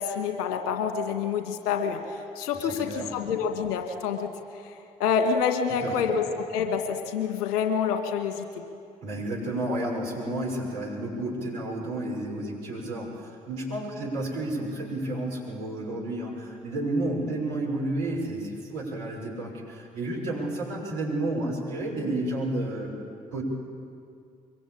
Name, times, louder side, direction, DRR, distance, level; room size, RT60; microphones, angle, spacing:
voice 1, 0.0-4.7 5.0-8.5, left 6 dB, 70° left, 5 dB, 2.1 m, -27 dB
voice 2, 2.6-3.2 5.8-6.1 9.0-23.0 23.3-23.4, right 1 dB, 70° right, -3 dB, 6.3 m, -31 dB
23.5 x 23.5 x 8.7 m, 2.4 s
figure-of-eight pair, 45°, 19 cm